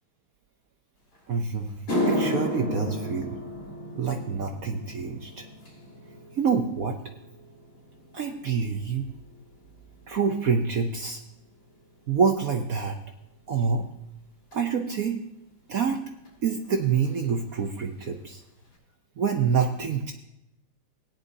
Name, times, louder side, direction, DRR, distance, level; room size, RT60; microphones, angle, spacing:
sound 1, 1.2-1.3 1.7-10.2 10.5-10.9 11.7-11.8 14.5-14.6 16.3-16.4 16.5-16.8 17.0-17.6 18.0-18.1 18.6-18.7, left 1 dB, 85° left, 4.4 m, -33 dB
voice 1, 1.3-1.8 2.1-3.4 4.0-5.5 6.4-7.0 8.1-9.1 10.1-11.2 12.1-13.0 13.5-13.9 14.5-15.2 15.7-16.0 16.4-18.4 19.2-20.1, right 6 dB, 60° right, 4 dB, 0.9 m, -26 dB
17.0 x 10.5 x 2.7 m, 0.86 s
omnidirectional pair, 2.3 m